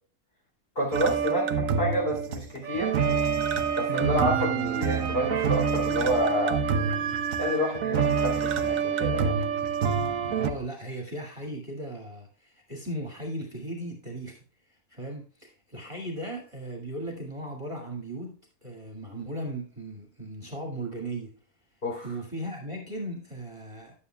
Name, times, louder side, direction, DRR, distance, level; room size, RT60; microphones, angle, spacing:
voice 1, 0.8-3.0 3.7-6.6 7.4-9.3 21.8-22.2, equal, 40° left, -2 dB, 3.6 m, -29 dB
Desert Snake, 0.9-10.5, right 6 dB, 65° right, 1.2 m, -27 dB
voice 2, 3.9-4.3 10.3-14.4 14.7-21.3 22.0-23.9, right 1 dB, 20° right, 0 dB, 2.1 m, -37 dB
11.0 x 8.6 x 2.3 m, 0.41 s
omnidirectional pair, 1.6 m